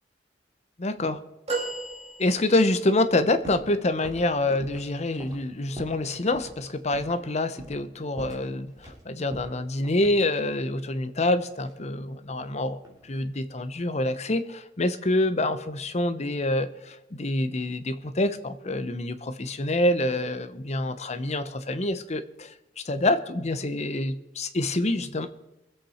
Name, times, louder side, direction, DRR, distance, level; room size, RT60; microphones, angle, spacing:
voice 1, 0.8-1.2 2.2-25.3, left 2 dB, 40° left, 11 dB, 0.8 m, -26 dB
sound 1, 1.5-2.9 3.6-3.7, right 3 dB, 35° right, 2.8 m, -33 dB
sound 2, 3.4-3.7 4.0-6.1 6.3-6.6 6.9-7.3 7.6-7.9 8.2-9.0 9.3-10.7 11.6-12.5 12.8-13.3, right 1 dB, 20° right, 3.0 m, -44 dB
23.5 x 8.2 x 4.3 m, 0.94 s
head